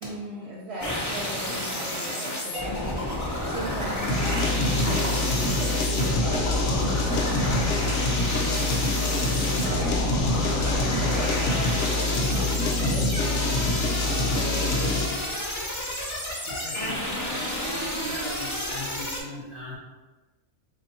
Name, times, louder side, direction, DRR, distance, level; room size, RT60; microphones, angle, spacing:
voice 1, 0.0-3.0 3.4-13.7 14.0-15.4, right 1 dB, 55° right, -5 dB, 0.9 m, -38 dB
sound 1, 0.8-19.2, left 1 dB, 25° left, 0.3 m, -31 dB
sound 2, 4.1-15.2, left 2 dB, 65° left, 0.8 m, -25 dB
voice 2, 16.4-19.8, right 1 dB, 35° right, -8 dB, 0.5 m, -37 dB
3.4 x 2.4 x 4.3 m, 1.3 s
omnidirectional pair, 1.4 m